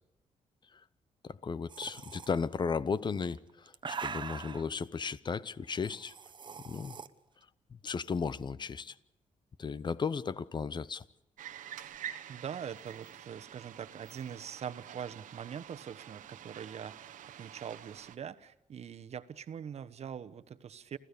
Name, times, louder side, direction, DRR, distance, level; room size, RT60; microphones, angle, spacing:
voice 1, 1.2-6.1 6.6-7.0 7.7-8.9 9.6-11.0, left 5 dB, 35° left, 0.8 m, -35 dB
sound 1, 1.7-2.3 3.3-4.7 5.8-7.1, right 6 dB, 35° right, 1.0 m, -42 dB
sound 2, 11.4-18.2, right 10 dB, 85° right, 1.1 m, -48 dB
voice 2, 12.3-21.0, right 8 dB, 55° right, 1.2 m, -43 dB
29.0 x 15.0 x 6.9 m
cardioid pair, 110°, 13 cm